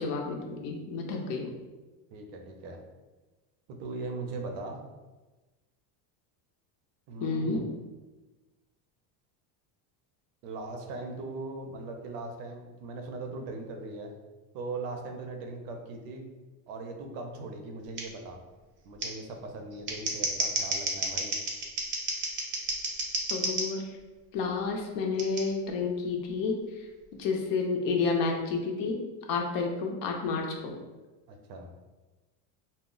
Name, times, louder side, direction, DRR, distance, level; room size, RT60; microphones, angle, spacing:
voice 1, 0.0-1.5 7.2-7.7 23.3-24.0 24.3-26.9 27.2-29.0 29.3-30.7, left 4 dB, 45° left, 2 dB, 0.5 m, -30 dB
voice 2, 2.1-2.8 3.7-4.8 7.1-7.7 10.4-14.1 14.5-16.3 16.7-18.4 18.8-21.3 31.3-31.7, right 3 dB, 75° right, 3 dB, 0.6 m, -39 dB
Scissors, 18.0-18.1 19.0-19.1 19.7-23.7 25.2-25.4, right 2 dB, 25° right, 0.4 m, -31 dB
2.1 x 2.0 x 3.7 m, 1.2 s
supercardioid pair, 120°, 48 cm